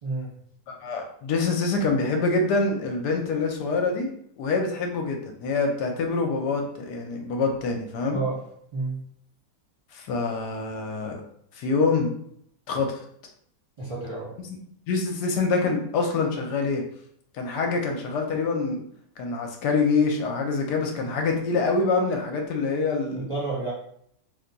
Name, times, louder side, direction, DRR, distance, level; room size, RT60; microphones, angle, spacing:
voice 1, 0.0-0.3 8.1-8.4 8.7-9.0 13.8-14.3 23.1-23.7, right 3 dB, 40° right, -5 dB, 0.4 m, -30 dB
voice 2, 0.7-4.1 4.4-8.2 9.9-11.2 11.6-12.1 12.7-13.0 14.9-16.8 17.4-18.8 19.2-23.2, left 4 dB, 75° left, 2 dB, 1.1 m, -25 dB
3.0 x 2.2 x 3.8 m, 0.67 s
omnidirectional pair, 1.9 m